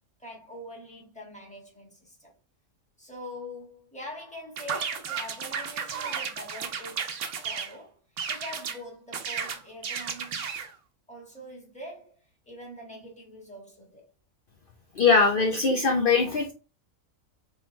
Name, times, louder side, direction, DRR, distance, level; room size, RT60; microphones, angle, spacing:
voice 1, 0.2-2.3 3.0-8.0 8.3-10.5 11.1-12.2 12.4-14.1, left 1 dB, 5° left, 1.5 m, -44 dB
sound 1, 4.6-7.7 8.2-8.8 9.1-10.7, right 7 dB, 65° right, 1.1 m, -33 dB
voice 2, 14.9-16.5, left 4 dB, 50° left, 0.8 m, -21 dB
4.4 x 3.7 x 3.2 m
omnidirectional pair, 1.4 m